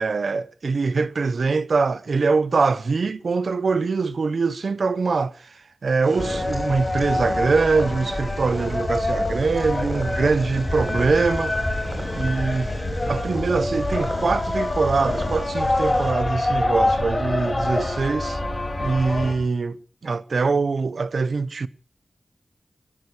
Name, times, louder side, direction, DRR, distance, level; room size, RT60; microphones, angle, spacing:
voice 1, 0.0-5.5 5.8-11.5 12.1-18.4 18.8-19.8 20.0-21.7, right 4 dB, 70° right, 0.7 m, -23 dB
Purr, 6.0-16.1, right 1 dB, 30° right, 6.0 m, -38 dB
sound 1, 6.2-19.3, left 2 dB, 30° left, 4.4 m, -26 dB
22.5 x 16.5 x 3.3 m
wide cardioid pair, 95°, 0 cm